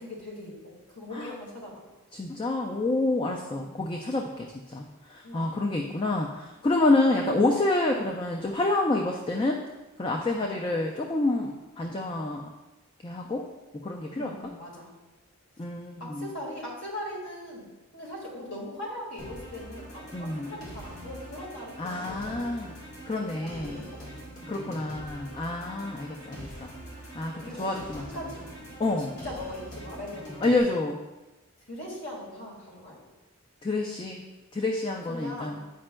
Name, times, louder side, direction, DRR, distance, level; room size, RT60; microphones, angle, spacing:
voice 1, 0.0-1.8 3.3-3.7 5.2-5.9 10.3-10.5 14.1-14.9 16.0-22.4 23.1-24.3 24.6-24.8 27.4-28.5 29.1-30.5 31.7-33.0 35.1-35.6, left 1 dB, 55° left, -4 dB, 1.8 m, -40 dB
voice 2, 2.1-9.6 10.0-12.5 13.0-13.5 13.7-14.3 15.6-16.3 20.1-20.5 21.8-22.8 23.1-23.8 24.5-26.7 27.1-28.0 28.8-29.1 30.4-31.0 33.6-34.2 34.5-35.6, left 2 dB, 25° left, 1 dB, 0.3 m, -28 dB
sound 1, 19.2-30.6, right 1 dB, 75° left, 1.7 m, -43 dB
8.7 x 5.2 x 2.2 m, 1.1 s
head